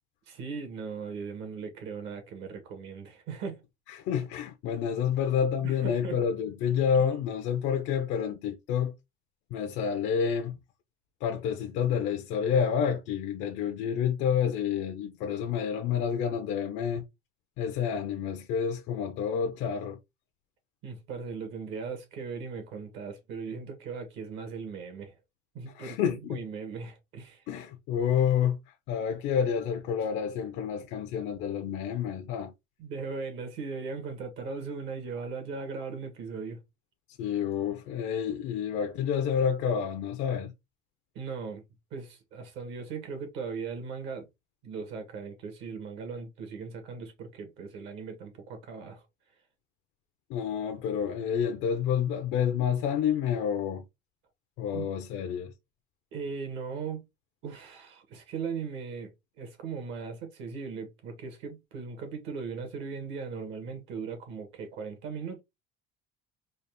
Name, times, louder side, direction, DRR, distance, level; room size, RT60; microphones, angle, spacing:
voice 1, 0.3-3.6 5.6-6.2 20.8-25.2 25.5-27.4 32.8-36.6 41.1-41.6 41.9-44.3 44.6-49.0 54.7-54.9 56.1-57.0 57.4-65.4, right 5 dB, 65° right, 1.5 m, -38 dB
voice 2, 3.9-8.9 9.5-10.6 11.2-17.0 17.6-20.0 25.8-26.4 27.5-28.6 28.9-32.5 37.2-40.5 50.3-53.8 54.6-55.5, left 8 dB, 65° left, 0.6 m, -29 dB
4.0 x 2.4 x 3.4 m
cardioid pair, 155°, 21 cm